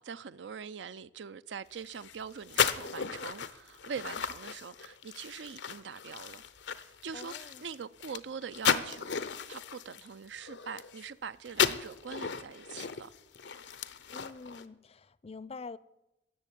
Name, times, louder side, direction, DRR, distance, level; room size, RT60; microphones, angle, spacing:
voice 1, 0.0-6.4 6.8-13.1, right 6 dB, 90° right, 0.5 m, -43 dB
sound 1, 1.8-11.2 11.5-14.6, left 7 dB, 90° left, 0.8 m, -35 dB
voice 2, 7.1-7.6 14.1-15.8, left 4 dB, 35° left, 0.5 m, -46 dB
14.5 x 7.2 x 10.0 m
head